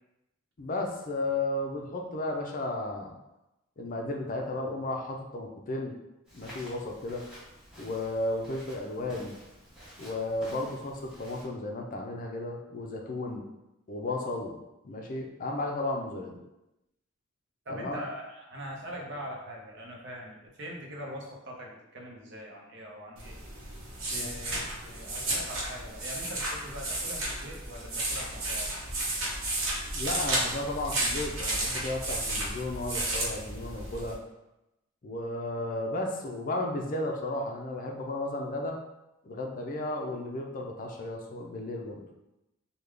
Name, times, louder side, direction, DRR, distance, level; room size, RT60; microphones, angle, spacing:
voice 1, 0.6-3.1 3.8-6.0 6.3-7.2 7.8-9.3 10.0-13.4 13.9-14.6 14.8-16.4 17.7-18.0 24.1-24.3 29.9-34.2 35.0-38.8 39.2-42.0, left 2 dB, 40° left, 1 dB, 0.4 m, -34 dB
Walk footsteps, 6.2-11.4, equal, 5° right, 1.0 m, -50 dB
voice 2, 17.7-23.4 24.1-28.8, equal, 60° right, -1 dB, 0.7 m, -42 dB
sound 1, 23.2-34.1, right 1 dB, 90° right, 0.9 m, -33 dB
3.6 x 2.2 x 3.2 m, 0.93 s
head